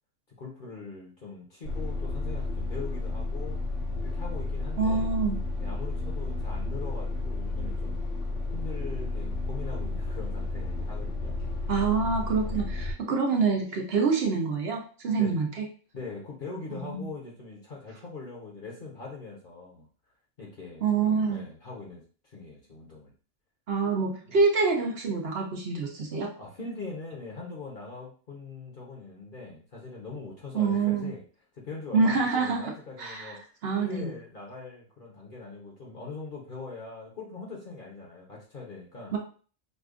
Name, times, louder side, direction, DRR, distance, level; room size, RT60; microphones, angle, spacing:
voice 1, 0.4-3.6 4.0-5.1 5.6-8.0 8.5-11.4 12.3-12.6 15.2-15.4 15.9-19.9 20.4-23.1 24.3-24.4 26.4-31.2 31.5-33.4 33.8-39.1, left 4 dB, 45° left, -2 dB, 1.0 m, -42 dB
sound 1, 1.7-12.9, left 2 dB, 70° left, 1.2 m, -32 dB
voice 2, 4.8-5.4 11.7-15.6 16.7-17.0 20.8-21.4 23.7-26.3 30.5-31.1 31.9-32.7 33.0-34.1 39.1-39.2, right 4 dB, 60° right, 2 dB, 0.8 m, -26 dB
5.1 x 2.3 x 2.4 m, 0.40 s
omnidirectional pair, 1.3 m